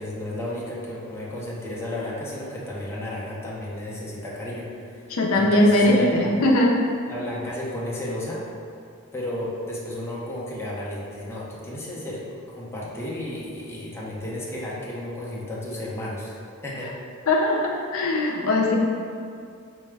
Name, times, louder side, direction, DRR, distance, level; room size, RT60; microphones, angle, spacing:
voice 1, 0.0-4.7 5.3-6.3 7.0-8.5 9.1-12.2 12.5-16.9, left 1 dB, 10° left, -6 dB, 0.6 m, -33 dB
voice 2, 5.1-6.8 17.3-18.8, left 1 dB, 75° left, -1 dB, 0.5 m, -20 dB
4.6 x 2.1 x 3.3 m, 2.4 s
head